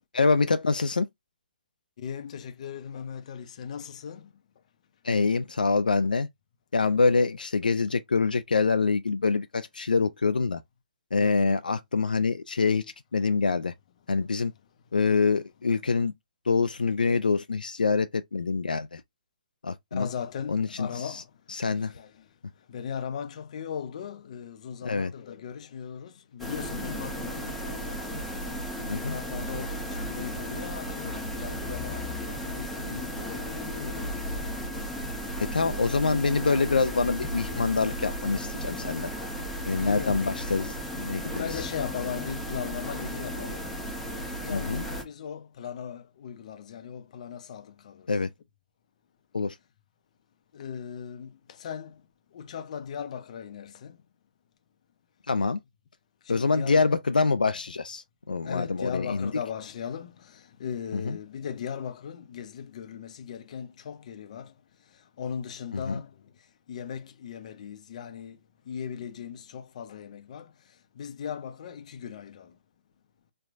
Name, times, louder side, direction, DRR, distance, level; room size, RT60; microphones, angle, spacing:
voice 1, 0.1-1.1 5.0-6.3 6.7-10.6 11.1-13.7 14.1-14.5 14.9-16.1 16.5-19.0 19.6-20.1 20.5-21.2 21.5-21.9 24.8-25.1 28.9-29.2 35.4-39.1 39.7-41.5 44.5-44.8 48.1-48.3 49.3-49.6 55.3-55.6 56.3-59.3 60.9-61.2 65.7-66.0, left 4 dB, 85° left, 0.4 m, -25 dB
voice 2, 2.0-4.3 11.2-11.5 19.9-21.2 21.9-22.1 22.7-28.0 28.8-34.0 39.8-40.3 41.3-43.7 44.4-48.1 50.5-52.0 52.3-54.0 56.3-56.9 58.4-64.5 65.2-66.1 66.7-68.4 68.7-70.5 71.0-72.5, left 7 dB, 55° left, 0.7 m, -38 dB
sound 1, 26.4-45.0, equal, 5° left, 0.9 m, -35 dB
4.4 x 2.3 x 2.5 m
figure-of-eight pair, 130°, 5 cm